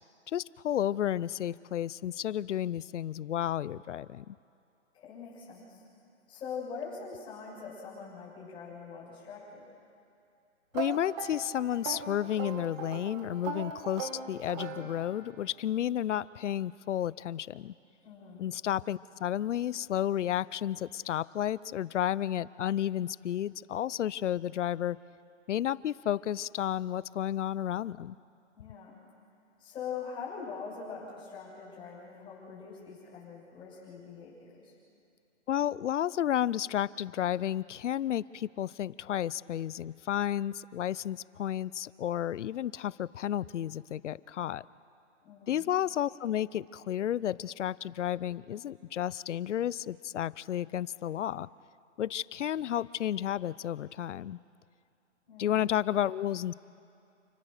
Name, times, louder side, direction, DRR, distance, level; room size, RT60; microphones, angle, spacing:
voice 1, 0.3-4.4 10.7-17.7 18.4-25.0 25.5-28.2 35.5-44.6 45.5-51.5 52.0-54.4 55.4-56.5, left 11 dB, 75° left, 21 dB, 0.6 m, -32 dB
voice 2, 4.9-5.8 6.3-9.6 18.0-18.5 28.5-29.0 29.6-34.3 34.6-34.7 45.2-45.7 55.3-55.6, left 6 dB, 15° left, -7 dB, 6.9 m, -43 dB
sound 1, 10.7-15.4, right 6 dB, 25° right, 1.3 m, -39 dB
29.0 x 18.0 x 6.6 m, 2.5 s
hypercardioid pair, 165°, 36 cm